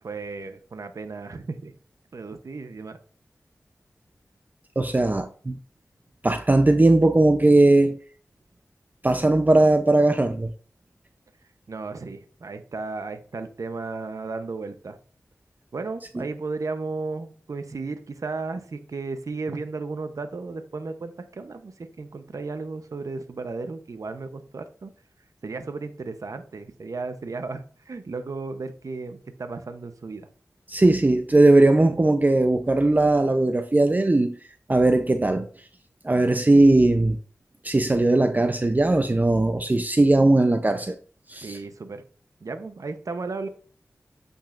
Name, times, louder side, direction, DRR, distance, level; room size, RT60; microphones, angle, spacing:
voice 1, 0.0-1.7 2.1-3.0 11.7-15.0 15.7-24.9 25.4-30.3 41.4-42.0 42.4-43.5, right 3 dB, 70° right, 0.8 m, -34 dB
voice 2, 4.8-5.6 6.2-8.0 9.0-10.5 30.7-34.4 34.7-35.5 36.0-37.2 37.6-40.9 41.3-41.6, right 2 dB, 30° right, 0.5 m, -19 dB
8.7 x 5.4 x 2.5 m
wide cardioid pair, 50°, 6 cm